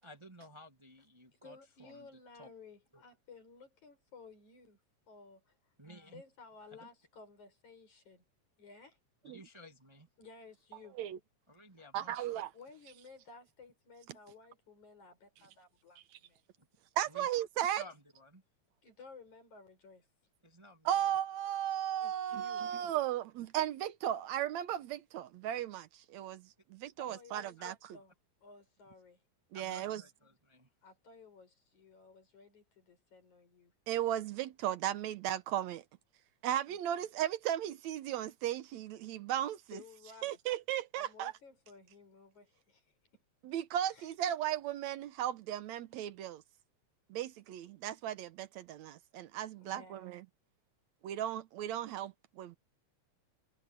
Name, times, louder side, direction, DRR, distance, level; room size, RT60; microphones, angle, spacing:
voice 1, 0.0-2.1 2.3-2.5 2.9-3.0 5.8-6.2 6.7-6.8 9.2-10.1 11.5-12.3 16.6-16.7 17.1-17.3 17.7-18.4 20.4-21.1 27.1-27.2 27.6-27.7 28.8-28.9 29.5-30.7, left 1 dB, 10° right, 1.6 m, -55 dB
voice 2, 1.3-4.8 5.1-5.6 6.1-8.2 8.6-9.0 10.2-11.0 12.5-16.4 18.8-20.1 22.0-22.7 27.0-28.1 28.4-29.2 30.8-33.7 36.7-36.8 39.7-40.4 41.0-42.9 43.9-44.1 49.6-50.1, left 4 dB, 80° left, 8.0 m, -56 dB
voice 3, 11.9-12.5 17.0-17.8 20.9-27.8 29.5-30.0 33.9-35.8 36.4-39.8 40.2-41.3 43.4-46.4 47.1-50.3 51.0-52.6, right 11 dB, 75° right, 2.1 m, -36 dB
omnidirectional pair, 3.3 m